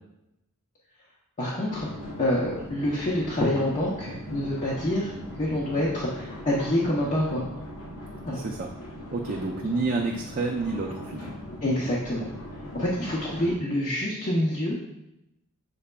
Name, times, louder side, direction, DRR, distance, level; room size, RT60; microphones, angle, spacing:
voice 1, 1.4-1.9 2.2-5.1 5.4-7.4 8.2-8.4 11.6-12.3 12.7-14.8, left 1 dB, 35° left, -6 dB, 0.7 m, -26 dB
sound 1, 1.7-13.6, left 1 dB, 85° left, 1.0 m, -40 dB
voice 2, 8.3-8.7 9.1-11.3, right 3 dB, 40° right, -1 dB, 0.4 m, -29 dB
6.5 x 3.5 x 2.2 m, 0.87 s
head